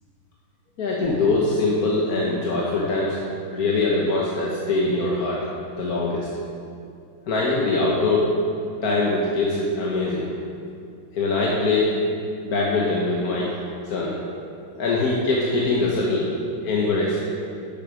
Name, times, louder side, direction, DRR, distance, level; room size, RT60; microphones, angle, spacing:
voice 1, 0.8-3.2 3.5-5.4 5.8-6.3 7.3-8.4 8.8-10.3 11.1-11.9 12.4-13.5 13.9-14.1 14.7-16.3 16.6-17.2, left 2 dB, 50° left, -4 dB, 1.5 m, -22 dB
11.0 x 9.0 x 5.1 m, 2.5 s
omnidirectional pair, 2.2 m